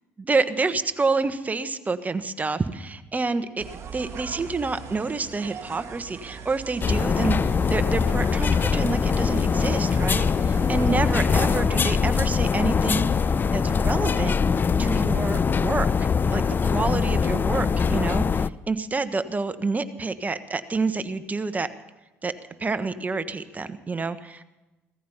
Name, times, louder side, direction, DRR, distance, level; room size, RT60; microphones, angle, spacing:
voice 1, 0.3-14.3 14.8-21.7 22.2-22.3 22.6-24.4, right 4 dB, 25° right, 10 dB, 1.2 m, -28 dB
sound 1, 3.6-11.7, right 6 dB, 50° right, 1.7 m, -41 dB
sound 2, 6.8-18.5, left 5 dB, 35° left, 0.5 m, -22 dB
17.0 x 14.0 x 5.7 m, 1.1 s
hypercardioid pair, 65°, 6 cm